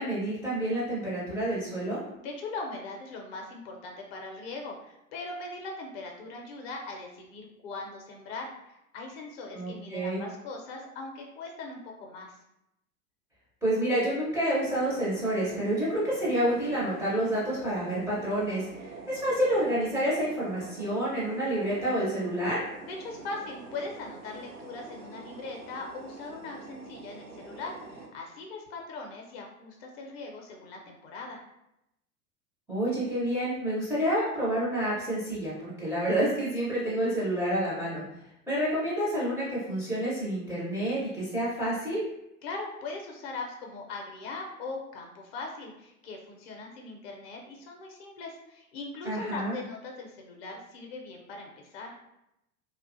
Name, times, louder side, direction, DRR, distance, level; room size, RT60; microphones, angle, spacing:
voice 1, 0.0-2.0 9.5-10.2 13.6-22.6 32.7-38.0 38.5-42.0 49.0-49.5, right 1 dB, 5° right, -9 dB, 0.4 m, -28 dB
voice 2, 2.2-12.4 22.8-31.4 42.4-52.0, left 3 dB, 45° left, 1 dB, 0.5 m, -40 dB
sound 1, 14.6-28.1, right 3 dB, 80° right, 0.6 m, -45 dB
2.4 x 2.2 x 2.4 m, 0.85 s
figure-of-eight pair, 90°, 45 cm